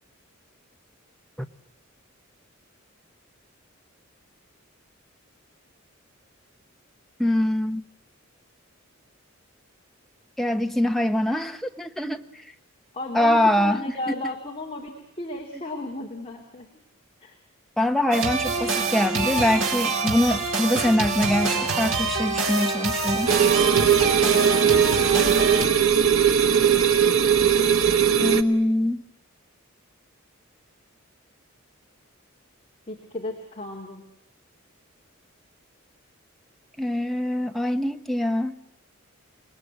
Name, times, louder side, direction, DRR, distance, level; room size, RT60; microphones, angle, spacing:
voice 1, 7.2-7.8 10.4-12.3 13.1-13.8 14.1-14.2 17.8-23.3 28.2-29.0 36.8-38.6, left 1 dB, ahead, 5 dB, 1.0 m, -23 dB
voice 2, 12.9-16.7 17.2-17.3 32.9-34.0, left 1 dB, 25° left, 1 dB, 2.7 m, -34 dB
sound 1, 18.1-25.6, right 3 dB, 60° right, 4.1 m, -26 dB
sound 2, 23.3-28.4, right 8 dB, 90° right, 1.4 m, -19 dB
28.5 x 20.0 x 9.4 m, 0.79 s
head